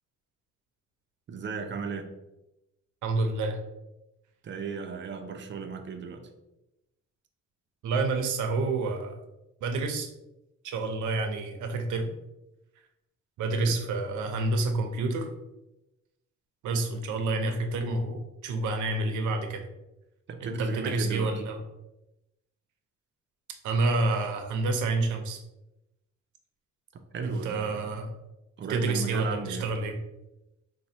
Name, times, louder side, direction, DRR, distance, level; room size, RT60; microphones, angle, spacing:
voice 1, 1.3-2.1 4.4-6.3 13.7-13.8 20.3-21.3 27.1-27.9 28.6-29.7, right 5 dB, 40° right, 6 dB, 0.5 m, -35 dB
voice 2, 3.0-3.6 7.8-9.1 9.6-10.1 10.6-12.1 13.4-15.3 16.6-19.7 20.4-21.6 23.6-25.4 27.2-28.1 28.7-30.0, right 3 dB, 75° right, 5 dB, 0.7 m, -28 dB
4.2 x 2.3 x 2.7 m, 0.93 s
cardioid pair, 90°, 30 cm